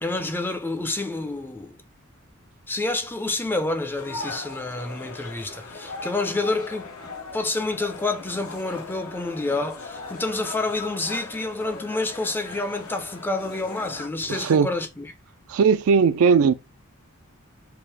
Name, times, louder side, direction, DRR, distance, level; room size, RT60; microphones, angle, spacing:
voice 1, 0.0-1.8 2.7-15.1, left 2 dB, 10° left, 0.4 m, -28 dB
sound 1, 4.0-14.1, left 3 dB, 80° left, 0.8 m, -39 dB
voice 2, 14.3-14.7 15.5-16.5, right 5 dB, 70° right, 0.4 m, -18 dB
3.6 x 2.5 x 3.3 m
head